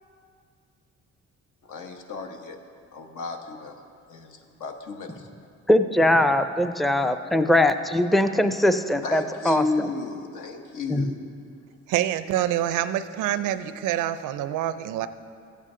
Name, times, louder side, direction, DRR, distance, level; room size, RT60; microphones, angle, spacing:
voice 1, 1.6-2.6 2.9-3.8 4.1-5.3 9.0-11.2, left 3 dB, 80° left, 4 dB, 1.1 m, -33 dB
voice 2, 5.7-9.9 10.9-11.1, left 1 dB, ahead, 9 dB, 0.4 m, -21 dB
voice 3, 11.9-15.1, right 12 dB, 90° right, 13 dB, 0.5 m, -26 dB
15.0 x 8.3 x 3.7 m, 2.4 s
cardioid pair, 90°, 30 cm